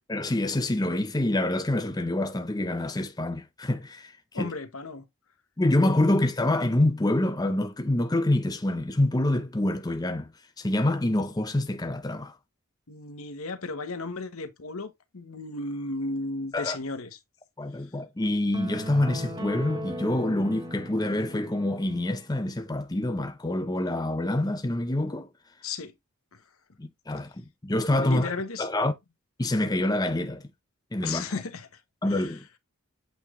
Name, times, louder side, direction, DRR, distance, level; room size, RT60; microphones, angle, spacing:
voice 1, 0.1-4.5 5.6-10.3 10.6-12.4 16.5-16.8 17.6-25.3 26.8-28.3 28.6-28.9 29.4-30.4 30.9-31.2 32.0-32.4, left 1 dB, 15° left, 0.6 m, -26 dB
voice 2, 4.3-5.0 12.9-17.2 25.6-25.9 26.3-26.4 28.0-28.7 31.0-31.7 32.1-32.4, left 3 dB, 75° left, 1.1 m, -34 dB
sound 1, 18.5-22.1, equal, 20° right, 1.2 m, -37 dB
8.3 x 3.4 x 3.6 m
head